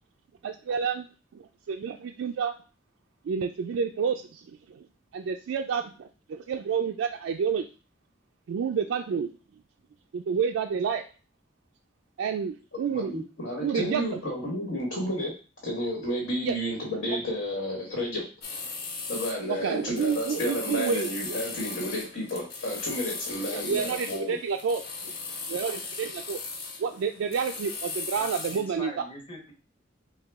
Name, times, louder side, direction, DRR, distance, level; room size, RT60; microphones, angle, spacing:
voice 1, 0.4-1.1 1.3-2.5 3.2-4.9 5.1-7.7 8.5-9.3 10.1-11.0 12.2-13.1 13.6-14.2 16.4-16.6 19.5-21.4 23.5-25.1 25.5-26.4 26.8-29.0, right 6 dB, 80° right, 4 dB, 0.3 m, -29 dB
voice 2, 12.9-15.3 15.6-18.2 19.1-24.4, equal, 90° left, -3 dB, 1.5 m, -31 dB
sound 1, 18.4-28.7, left 4 dB, 55° left, 0.8 m, -38 dB
voice 3, 28.2-29.5, left 1 dB, 30° left, 0 dB, 1.0 m, -43 dB
4.7 x 2.3 x 3.5 m, 0.35 s
head